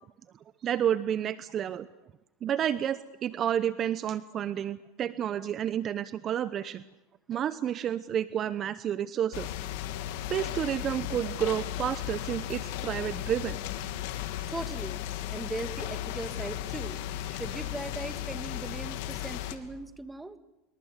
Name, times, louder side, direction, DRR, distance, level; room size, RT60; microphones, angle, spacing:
voice 1, 0.6-1.9 2.4-6.8 7.3-9.5 10.3-13.6, right 10 dB, 40° right, 15 dB, 0.9 m, -30 dB
sound 1, 9.3-19.6, left 12 dB, 70° left, 2.6 m, -35 dB
voice 2, 14.5-15.0 15.3-17.0 17.3-20.4, right 2 dB, 10° right, 10 dB, 1.9 m, -39 dB
27.0 x 23.0 x 8.3 m, 0.96 s
hypercardioid pair, 105°, 0 cm